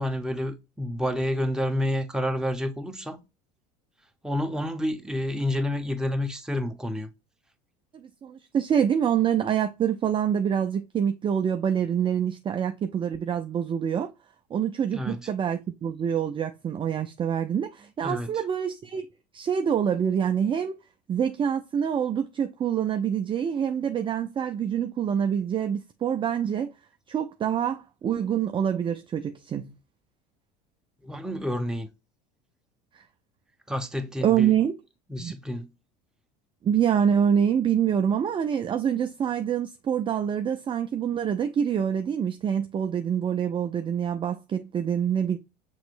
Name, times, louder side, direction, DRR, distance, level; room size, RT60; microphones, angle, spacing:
voice 1, 0.0-3.2 4.2-7.1 14.9-15.2 18.0-18.3 31.0-31.9 33.7-34.5 35.1-35.7, left 1 dB, 5° right, 0.9 m, -29 dB
voice 2, 7.9-14.1 14.5-19.1 19.3-20.8 21.1-26.7 27.1-29.7 33.0-33.1 34.2-34.8 35.2-35.3 36.6-45.4, right 8 dB, 25° right, 0.4 m, -26 dB
6.0 x 3.0 x 2.5 m
hypercardioid pair, 75°, 21 cm